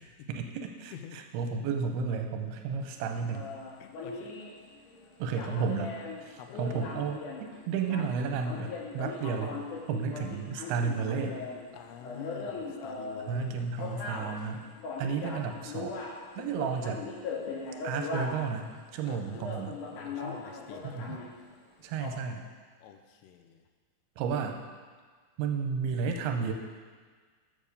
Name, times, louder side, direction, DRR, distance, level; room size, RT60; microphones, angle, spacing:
voice 1, 0.3-3.5 5.2-9.6 9.9-11.4 13.3-14.7 15.0-16.0 16.4-17.1 17.8-19.8 20.8-21.2 21.8-22.5 24.2-24.6 25.4-26.5, right 5 dB, 80° right, 4 dB, 2.6 m, -32 dB
sound 1, 2.8-18.7 19.0-19.1 19.3-21.6 21.9-22.1, left 3 dB, 65° left, 2.4 m, -39 dB
voice 2, 3.8-4.3 6.4-6.6 11.7-13.7 19.1-19.5 19.9-21.3 22.8-23.6, left 8 dB, 80° left, 5 dB, 2.6 m, -47 dB
7.3 x 7.1 x 6.6 m, 1.5 s
omnidirectional pair, 4.7 m